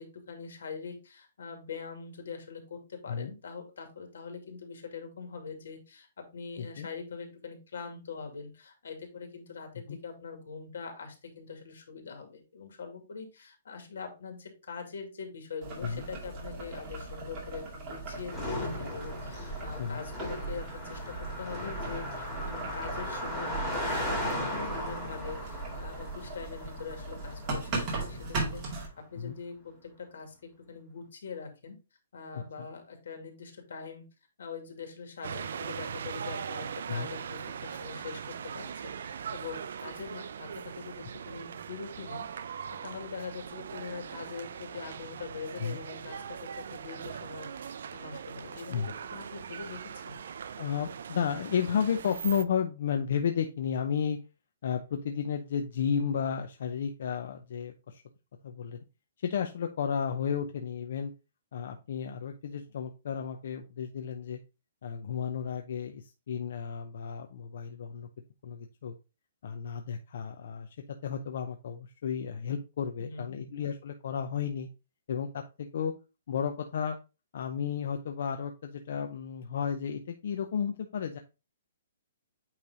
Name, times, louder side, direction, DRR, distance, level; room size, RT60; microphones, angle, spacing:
voice 1, 0.0-29.7 30.0-30.3 30.7-31.8 32.1-34.0 34.4-42.3 42.8-48.8 49.1-50.2 73.0-73.3, left 5 dB, 80° left, 5 dB, 2.3 m, -43 dB
voice 2, 6.6-6.9 9.9-10.0 15.8-16.0 19.8-20.0 29.2-29.4 32.3-32.7 36.9-37.1 45.6-45.8 48.7-48.9 50.5-54.2 54.6-58.0 58.4-58.8 59.2-61.1 61.5-64.4 64.8-68.1 68.4-68.9 69.4-70.7 71.0-74.7 75.1-75.9 76.3-77.0 77.3-81.2, left 7 dB, 55° left, 5 dB, 0.7 m, -33 dB
Boiling, 15.6-28.9, right 3 dB, 25° right, 2.0 m, -38 dB
Car passing by, 18.3-27.9, left 1 dB, ahead, 2.0 m, -37 dB
sound 1, 35.2-52.4, right 7 dB, 65° right, 0.5 m, -40 dB
8.6 x 3.2 x 3.9 m, 0.29 s
hypercardioid pair, 170°, 0 cm